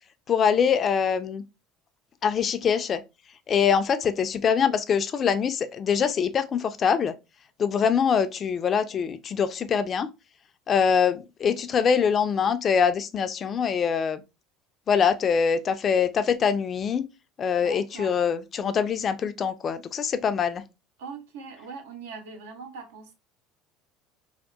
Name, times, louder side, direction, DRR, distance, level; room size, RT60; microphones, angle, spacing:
voice 1, 0.3-1.4 2.2-3.0 3.5-7.1 7.6-10.1 10.7-14.2 14.9-17.0 17.4-20.6, left 7 dB, 40° left, 0.3 m, -24 dB
voice 2, 17.6-18.1 21.0-23.1, right 5 dB, 80° right, 0.5 m, -41 dB
2.7 x 2.1 x 2.3 m
hypercardioid pair, 70°, 0 cm